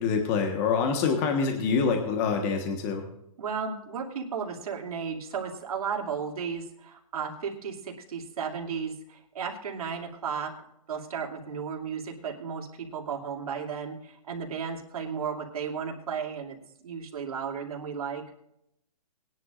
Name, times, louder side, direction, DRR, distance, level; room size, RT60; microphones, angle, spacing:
voice 1, 0.0-3.0, left 5 dB, 25° left, 4 dB, 1.4 m, -26 dB
voice 2, 3.4-10.5 10.9-16.6 16.8-18.2, right 6 dB, 70° right, 1 dB, 2.7 m, -34 dB
20.0 x 11.0 x 2.5 m, 0.78 s
hypercardioid pair, 160°, 19 cm